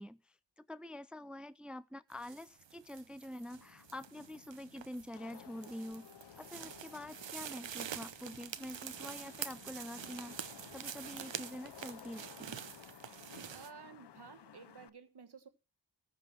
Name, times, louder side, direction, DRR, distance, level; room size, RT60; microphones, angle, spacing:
voice 1, 0.0-6.1 6.4-10.4 10.7-12.6, left 1 dB, ahead, 0.5 m, -46 dB
sound 1, 2.1-13.7, right 8 dB, 75° right, 0.9 m, -47 dB
Wind / Rain, 3.4-14.9, left 9 dB, 65° left, 0.7 m, -57 dB
sound 2, 6.2-12.1, left 6 dB, 90° left, 1.2 m, -62 dB
voice 2, 13.5-15.5, right 6 dB, 60° right, 1.5 m, -53 dB
15.0 x 5.5 x 6.1 m
cardioid pair, 50°, 45 cm